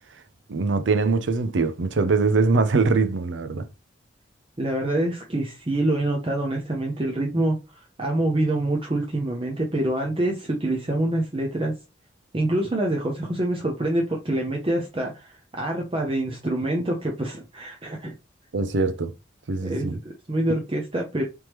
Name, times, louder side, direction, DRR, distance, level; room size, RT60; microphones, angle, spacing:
voice 1, 0.5-3.7 18.5-19.1 19.5-20.0, right 4 dB, 75° right, 0.5 m, -22 dB
voice 2, 4.6-11.7 12.3-18.1 19.6-21.2, right 1 dB, 30° right, 0.6 m, -26 dB
3.4 x 3.0 x 3.0 m
head